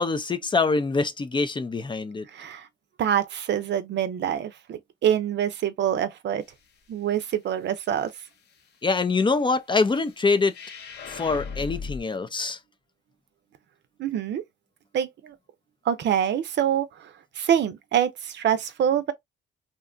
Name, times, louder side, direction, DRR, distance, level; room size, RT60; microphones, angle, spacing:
voice 1, 0.0-2.2 8.8-10.5 11.1-12.6, left 4 dB, 25° left, 0.5 m, -24 dB
voice 2, 2.3-2.7 3.0-6.4 6.9-8.1 14.0-14.4 14.9-15.3 15.9-17.1 17.4-19.1, right 9 dB, 60° right, 0.6 m, -25 dB
sound 1, 10.5-12.0, left 5 dB, 55° left, 0.7 m, -36 dB
2.8 x 2.2 x 2.5 m
cardioid pair, 90°, 20 cm